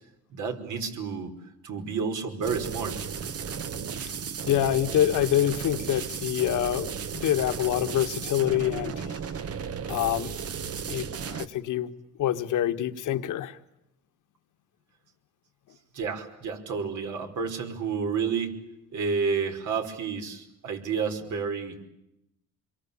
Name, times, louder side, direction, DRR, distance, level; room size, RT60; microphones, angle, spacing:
voice 1, 0.3-1.3 1.6-3.0 15.9-18.6 18.9-21.8, right 5 dB, 70° right, 4 dB, 5.2 m, -30 dB
sound 1, 2.4-11.5, right 6 dB, 50° right, 1.4 m, -35 dB
voice 2, 4.4-9.2 9.9-10.3 10.9-11.9 12.2-13.6, left 12 dB, 80° left, 9 dB, 1.8 m, -26 dB
27.0 x 23.0 x 8.8 m, 0.85 s
cardioid pair, 115°, 31 cm